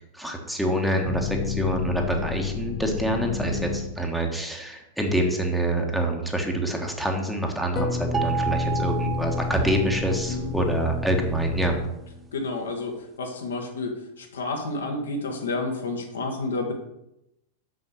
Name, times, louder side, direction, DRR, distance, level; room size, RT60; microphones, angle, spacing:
voice 1, 0.1-11.8, right 1 dB, ahead, 2 dB, 1.5 m, -26 dB
sound 1, 1.0-4.2 7.7-12.3, left 5 dB, 35° left, 1.0 m, -30 dB
sound 2, 8.1-10.4, right 8 dB, 20° right, 0.3 m, -31 dB
voice 2, 12.3-16.7, left 2 dB, 65° left, 2 dB, 1.7 m, -30 dB
6.9 x 6.4 x 6.5 m, 0.86 s
figure-of-eight pair, 90°, 0 cm